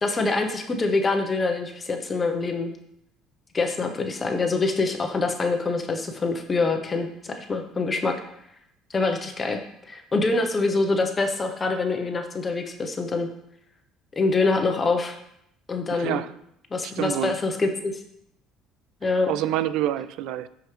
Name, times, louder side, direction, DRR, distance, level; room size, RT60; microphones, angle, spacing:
voice 1, 0.0-2.7 3.5-8.1 8.9-9.6 9.9-13.3 14.2-15.1 15.7-16.2 16.7-17.9 19.0-19.3, left 3 dB, 25° left, 4 dB, 0.9 m, -25 dB
voice 2, 15.9-16.3 16.8-17.3 19.3-20.5, right 12 dB, 75° right, 15 dB, 0.4 m, -27 dB
13.0 x 4.8 x 3.3 m, 0.76 s
cardioid pair, 110°, 0 cm